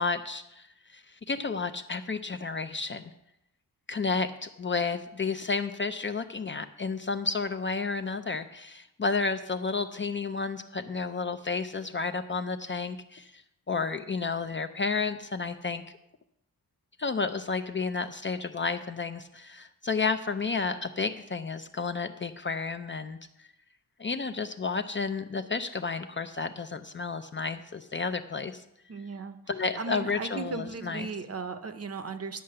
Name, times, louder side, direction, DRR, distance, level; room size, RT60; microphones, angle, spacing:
voice 1, 0.0-3.0 3.9-16.0 17.0-23.5 24.0-28.6 29.5-31.1, left 4 dB, 30° left, 8 dB, 0.4 m, -31 dB
voice 2, 28.9-29.4 29.8-32.4, right 4 dB, 40° right, 10 dB, 0.7 m, -36 dB
10.5 x 5.6 x 7.5 m, 0.84 s
wide cardioid pair, 165°, 38 cm